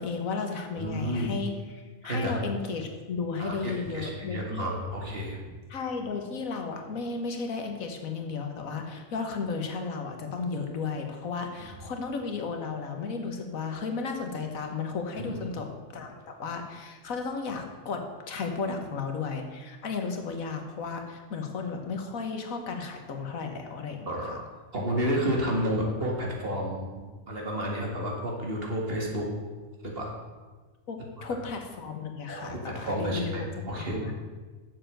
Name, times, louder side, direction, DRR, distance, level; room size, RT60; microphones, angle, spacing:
voice 1, 0.0-4.7 5.7-15.7 15.9-24.4 30.9-33.5 33.8-34.1, left 4 dB, 80° left, 4 dB, 1.6 m, -34 dB
voice 2, 0.8-1.3 2.0-2.3 3.4-5.4 15.2-15.4 24.1-24.3 24.7-27.0 27.3-29.3 29.8-30.2 32.3-34.0, equal, 45° right, -1 dB, 2.2 m, -31 dB
7.3 x 7.0 x 7.6 m, 1.4 s
omnidirectional pair, 1.4 m